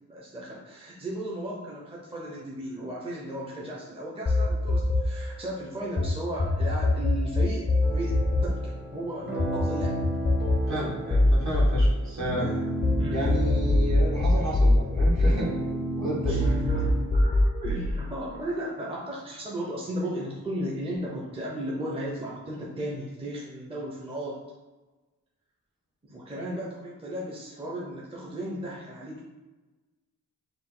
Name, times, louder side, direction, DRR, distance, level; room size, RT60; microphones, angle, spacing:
voice 1, 0.1-7.7 7.9-10.0 12.4-12.7 12.9-13.3 16.2-24.4 26.1-29.3, right 1 dB, 15° right, -4 dB, 0.6 m, -35 dB
sound 1, 4.3-6.1 6.4-12.9 13.3-15.9 16.3-17.9, left 2 dB, 25° left, 0.5 m, -23 dB
sound 2, 7.8-17.0, equal, 30° right, 1.3 m, -33 dB
voice 2, 10.7-12.5 13.1-15.5 16.0-16.5, equal, 55° right, -5 dB, 1.5 m, -31 dB
4.0 x 2.4 x 3.7 m, 1.2 s
wide cardioid pair, 95°, 34 cm